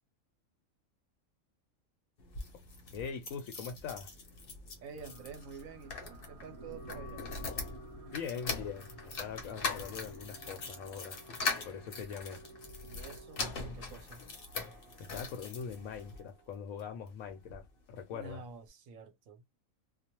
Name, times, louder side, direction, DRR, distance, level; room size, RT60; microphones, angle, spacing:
sound 1, 2.2-16.2 16.8-17.7 18.0-18.1 18.3-18.4, left 4 dB, 50° left, 0.8 m, -42 dB
voice 1, 2.9-4.1 8.1-11.2 11.7-12.4 15.1-18.4, left 6 dB, 85° left, 1.0 m, -42 dB
voice 2, 4.8-7.3 12.8-14.3 18.1-19.4, right 5 dB, 80° right, 1.1 m, -49 dB
sound 2, 5.0-16.9, equal, 60° right, 0.9 m, -54 dB
Wind instrument woodwind instrument, 6.5-13.6, right 1 dB, 30° right, 0.8 m, -54 dB
2.5 x 2.2 x 2.8 m
omnidirectional pair, 1.4 m